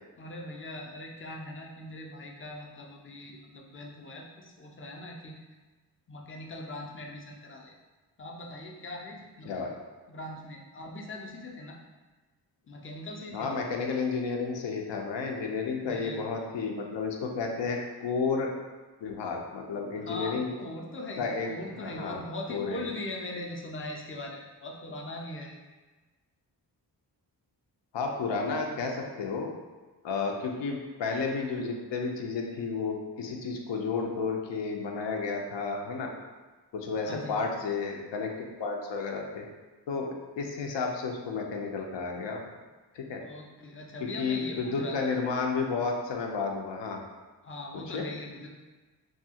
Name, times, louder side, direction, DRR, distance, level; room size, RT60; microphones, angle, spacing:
voice 1, 0.2-5.4 6.1-7.7 8.2-9.7 10.1-11.8 12.7-13.6 15.8-16.5 20.0-25.6 37.1-37.4 43.2-45.1 47.4-48.5, left 1 dB, 30° left, 0 dB, 0.4 m, -40 dB
voice 2, 13.3-18.5 19.0-20.6 21.2-21.5 21.8-22.2 22.5-22.9 27.9-29.5 30.0-36.1 36.7-39.4 39.9-42.4 42.9-43.2 44.2-47.0 47.7-48.0, left 4 dB, 85° left, 1 dB, 0.5 m, -32 dB
2.7 x 2.3 x 2.7 m, 1.3 s
wide cardioid pair, 105°, 42 cm